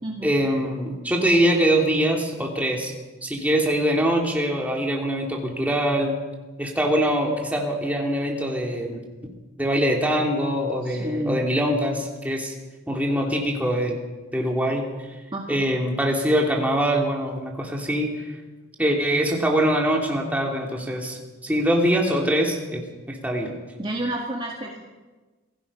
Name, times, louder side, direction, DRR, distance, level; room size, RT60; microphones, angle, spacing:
voice 1, 0.2-2.9 3.2-6.2 6.6-9.0 9.6-12.5 12.9-14.0 14.3-14.8 15.5-18.1 18.8-23.6, equal, 5° right, 0 dB, 2.9 m, -23 dB
voice 2, 10.8-11.4 15.3-15.6 23.8-24.8, right 1 dB, 25° right, 0 dB, 1.8 m, -30 dB
27.0 x 17.5 x 5.6 m, 1.2 s
head